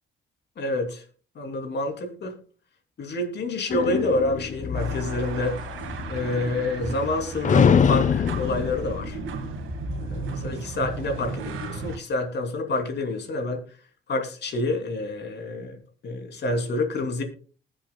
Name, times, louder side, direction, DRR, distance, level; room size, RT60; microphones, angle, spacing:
voice 1, 0.6-1.0 1.4-2.3 3.0-5.6 6.1-9.2 10.0-13.6 14.1-15.8 16.0-17.2, left 2 dB, 60° left, 5 dB, 2.9 m, -28 dB
sound 1, 3.7-7.1 7.4-10.1, left 7 dB, 40° left, 0.6 m, -25 dB
sound 2, 4.7-12.0, right 4 dB, 80° right, 1.8 m, -35 dB
20.0 x 7.7 x 2.3 m, 0.39 s
cardioid pair, 90°, 20 cm